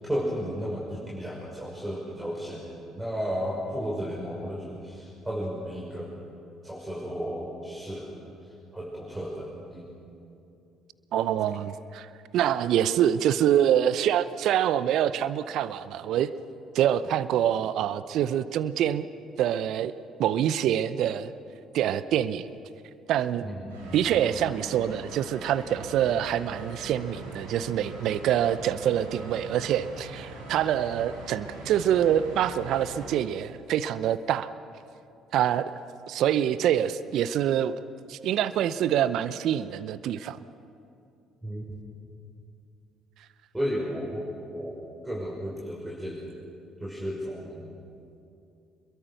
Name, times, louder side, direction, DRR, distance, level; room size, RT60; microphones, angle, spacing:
voice 1, 0.1-6.1 6.6-8.1 8.4-9.9 17.1-17.2 23.4-24.1 41.4-41.7 43.5-44.3 44.5-44.7 45.0-46.4 46.8-47.8, equal, 15° right, -4 dB, 5.9 m, -33 dB
voice 2, 11.1-12.1 12.3-16.3 16.7-19.1 19.4-19.9 20.2-21.3 21.7-22.5 23.1-23.5 23.9-34.5 35.3-35.7 36.1-37.8 38.1-40.4, right 10 dB, 60° right, 15 dB, 0.7 m, -25 dB
sound 1, 23.7-33.1, right 2 dB, 80° right, 4.9 m, -42 dB
27.0 x 22.5 x 6.6 m, 2.7 s
hypercardioid pair, 50°, 0 cm